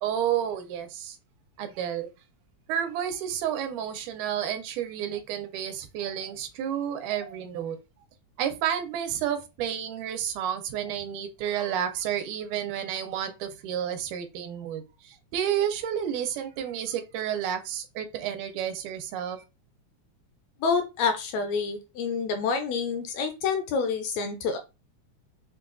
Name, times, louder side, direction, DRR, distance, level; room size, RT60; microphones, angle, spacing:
voice 1, 0.0-1.2 1.6-2.1 2.7-7.8 8.4-19.4, right 9 dB, 85° right, 2.1 m, -31 dB
voice 2, 20.6-24.6, left 5 dB, 80° left, 1.6 m, -28 dB
5.6 x 2.3 x 2.5 m
omnidirectional pair, 3.5 m